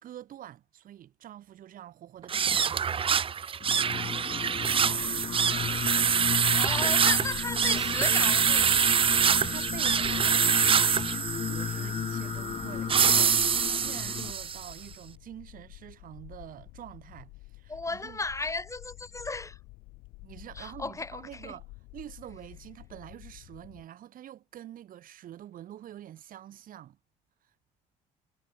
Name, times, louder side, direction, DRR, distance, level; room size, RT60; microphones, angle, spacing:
voice 1, 0.0-3.1 9.1-18.2 20.2-21.7 21.9-27.0, right 11 dB, 60° right, 3.1 m, -46 dB
sound 1, 2.2-14.7, right 7 dB, 35° right, 0.7 m, -25 dB
Singing, 3.6-14.3, left 8 dB, 35° left, 0.5 m, -35 dB
sound 2, 4.9-23.9, left 23 dB, 80° left, 4.6 m, -50 dB
voice 2, 6.6-8.7 17.7-19.6 20.6-21.5, left 3 dB, 20° left, 4.0 m, -35 dB
supercardioid pair, 75°, 16 cm